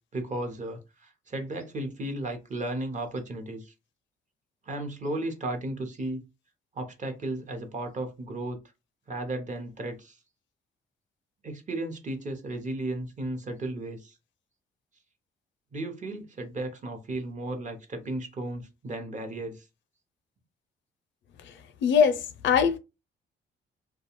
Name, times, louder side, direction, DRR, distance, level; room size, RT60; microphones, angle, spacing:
voice 1, 0.1-3.7 4.6-6.2 6.7-8.6 9.1-10.2 11.4-14.2 15.7-19.7, right 1 dB, 40° right, 0.8 m, -34 dB
voice 2, 21.8-22.8, left 7 dB, 70° left, 0.5 m, -22 dB
2.4 x 2.2 x 3.0 m
cardioid pair, 90°, 20 cm